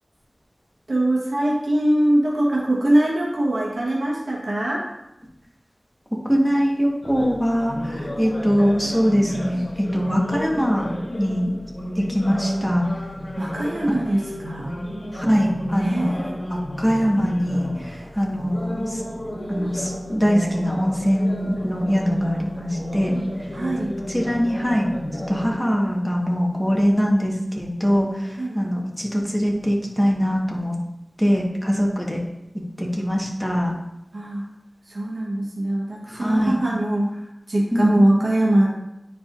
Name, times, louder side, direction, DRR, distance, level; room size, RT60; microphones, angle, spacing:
voice 1, 0.9-4.8 13.4-14.7 15.8-16.4 23.5-24.0 28.4-28.6 34.1-34.5 34.9-37.2 37.5-38.7, right 1 dB, 80° right, -4 dB, 1.3 m, -22 dB
voice 2, 6.2-10.8 11.2-11.5 12.0-12.8 15.1-16.2 16.5-19.0 19.5-23.1 24.1-24.8 25.3-30.7 31.2-32.2 32.8-33.7 36.1-36.6 37.7-37.9, equal, ahead, -2 dB, 1.5 m, -22 dB
sound 1, 7.0-25.6, equal, 55° left, 1.2 m, -32 dB
9.8 x 4.7 x 2.6 m, 0.89 s
wide cardioid pair, 50°, 0 cm